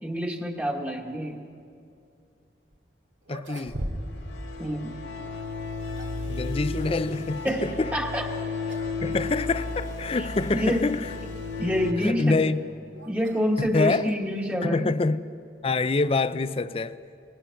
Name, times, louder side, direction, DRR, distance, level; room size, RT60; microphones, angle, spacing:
voice 1, 0.0-1.4 4.6-5.0 7.4-8.3 10.1-10.9 11.6-12.4 13.1-15.0, equal, 10° right, 1.3 m, -27 dB
sound 1, 2.7-2.8 3.2-4.3 4.6-4.7 5.6-6.3 8.1-8.3 8.7-9.0 9.3-9.4 10.2-10.3 12.0-14.2, right 1 dB, 90° right, 2.2 m, -39 dB
voice 2, 3.3-3.8 6.3-7.9 9.0-11.0 12.0-12.6 13.7-14.1 14.6-15.2 15.6-17.0, left 3 dB, 30° left, 0.4 m, -26 dB
sound 2, 3.7-11.9, left 3 dB, 80° left, 2.5 m, -34 dB
24.5 x 20.5 x 5.8 m
head